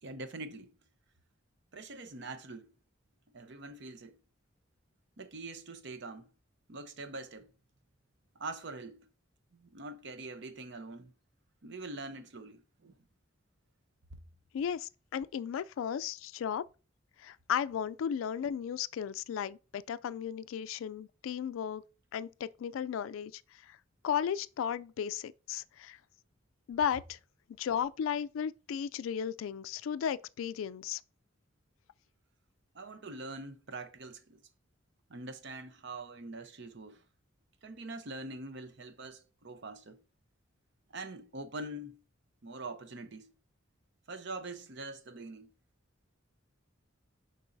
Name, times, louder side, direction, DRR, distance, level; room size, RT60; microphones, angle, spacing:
voice 1, 0.0-0.7 1.7-2.7 3.3-4.2 5.2-6.3 6.7-7.5 8.3-9.1 9.5-11.1 11.6-13.0 32.7-34.4 35.1-37.0 37.6-40.0 40.9-42.0 42.4-43.3 44.1-45.5, right 2 dB, 60° right, 0.8 m, -44 dB
voice 2, 14.5-16.6 17.2-21.8 22.1-23.8 24.0-26.0 26.7-27.2 27.6-31.0, left 8 dB, 80° left, 0.3 m, -35 dB
6.9 x 5.3 x 2.6 m
head